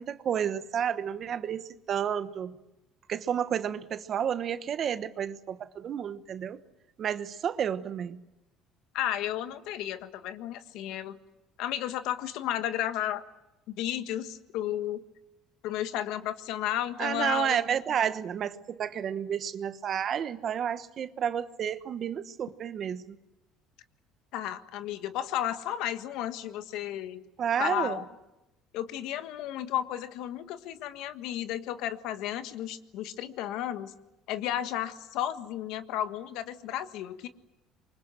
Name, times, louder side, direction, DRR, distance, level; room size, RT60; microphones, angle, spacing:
voice 1, 0.0-2.6 3.1-6.6 7.0-8.2 17.0-23.2 27.4-28.0, right 8 dB, 40° right, 1.1 m, -31 dB
voice 2, 8.9-11.2 11.6-13.2 13.7-15.0 15.6-17.6 24.3-27.2 27.6-28.0 28.7-33.9 34.3-37.3, left 12 dB, 75° left, 1.5 m, -33 dB
27.0 x 24.5 x 7.7 m
cardioid pair, 140°, 0 cm